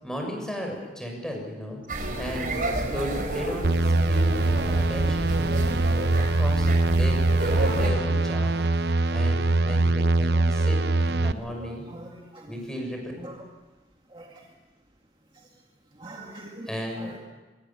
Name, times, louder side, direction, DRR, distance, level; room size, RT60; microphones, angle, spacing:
voice 1, 0.0-1.8 2.1-5.3 6.1-8.6 9.1-11.8 12.5-13.0 16.7-17.1, equal, 5° left, 1 dB, 6.6 m, -35 dB
sound 1, 1.9-7.9, right 1 dB, 50° right, 4.9 m, -30 dB
sound 2, 3.6-11.3, right 2 dB, 65° right, 0.8 m, -23 dB
voice 2, 10.3-10.7 11.4-11.5 11.9-12.5 13.2-13.4 14.1-14.4 16.0-16.7 17.0-17.2, right 1 dB, 30° right, 0 dB, 2.1 m, -43 dB
25.5 x 23.5 x 7.4 m, 1.2 s
head